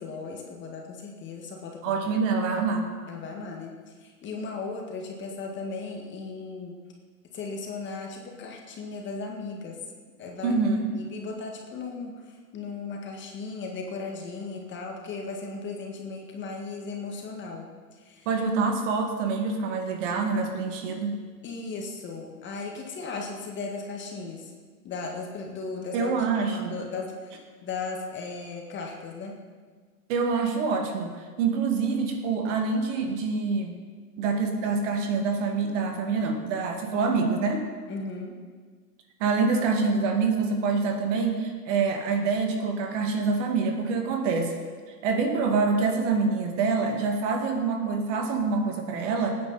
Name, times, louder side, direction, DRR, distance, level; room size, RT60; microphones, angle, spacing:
voice 1, 0.0-1.9 3.1-3.7 4.0-6.8 7.3-9.8 10.2-10.6 10.9-17.7 18.0-18.3 21.4-24.5 24.8-26.1 26.5-27.3 27.6-29.4 37.9-38.4, left 4 dB, 25° left, 1 dB, 1.9 m, -36 dB
voice 2, 1.8-2.9 10.4-11.1 18.3-21.2 25.9-26.7 30.1-31.1 31.4-33.7 34.2-37.7 39.2-44.5 45.0-49.4, right 4 dB, 45° right, 4 dB, 2.2 m, -26 dB
18.5 x 9.6 x 4.2 m, 1.5 s
hypercardioid pair, 115°, 49 cm